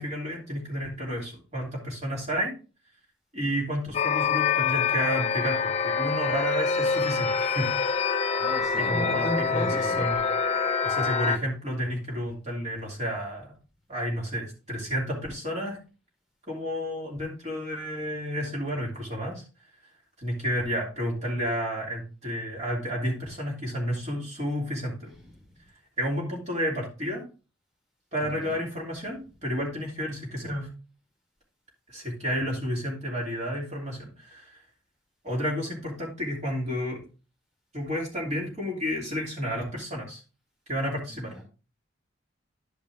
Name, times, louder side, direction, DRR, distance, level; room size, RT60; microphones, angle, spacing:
voice 1, 0.0-2.5 3.3-7.7 8.2-8.3 8.8-10.2 10.8-13.5 13.9-15.8 16.5-19.4 20.2-25.1 26.0-27.2 28.1-30.7 31.9-34.6 35.2-37.0 37.7-40.2 40.7-41.3, equal, 35° right, -2 dB, 3.1 m, -31 dB
sound 1, 3.9-11.4, left 5 dB, 35° left, 0.6 m, -26 dB
voice 2, 8.4-10.0 25.1-25.6 28.2-28.6 41.1-41.4, left 1 dB, 5° right, -3 dB, 2.1 m, -36 dB
11.0 x 5.3 x 3.5 m, 0.34 s
head